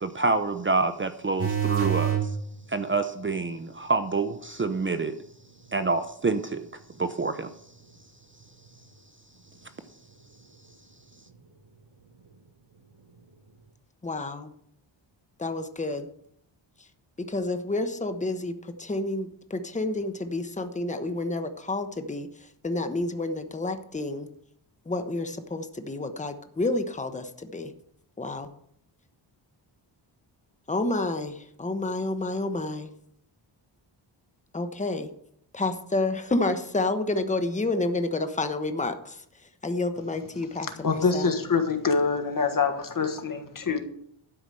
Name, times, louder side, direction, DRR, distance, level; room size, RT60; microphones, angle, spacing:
voice 1, 0.0-2.3 2.7-5.2 5.7-6.7 7.0-7.5, right 3 dB, 25° right, 10 dB, 0.6 m, -27 dB
sound 1, 1.4-2.3 8.7-8.8, right 9 dB, 70° right, 4.9 m, -25 dB
voice 2, 14.0-14.5 15.4-16.1 17.3-22.3 22.6-24.3 24.9-27.7 28.2-28.5 30.7-32.9 34.5-35.1 35.5-39.2 39.6-41.3, left 2 dB, 15° left, 8 dB, 1.1 m, -29 dB
voice 3, 40.6-43.8, left 5 dB, 45° left, 7 dB, 1.6 m, -25 dB
12.5 x 5.0 x 7.6 m, 0.70 s
wide cardioid pair, 100°, 47 cm